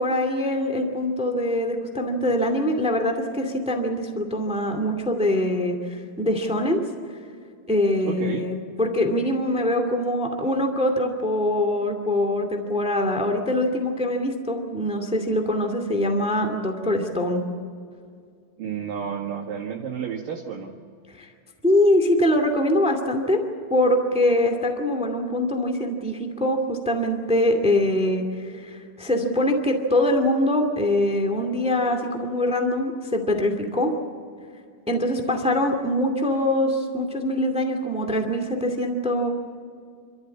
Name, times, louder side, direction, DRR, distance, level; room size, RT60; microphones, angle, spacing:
voice 1, 0.0-6.8 7.7-17.4 21.2-21.3 21.6-23.4 23.7-33.9 34.9-39.3, left 1 dB, 5° right, 4 dB, 1.2 m, -23 dB
voice 2, 8.1-8.5 18.6-20.7, right 7 dB, 65° right, -1 dB, 3.1 m, -31 dB
27.5 x 14.0 x 8.6 m, 2.2 s
omnidirectional pair, 4.5 m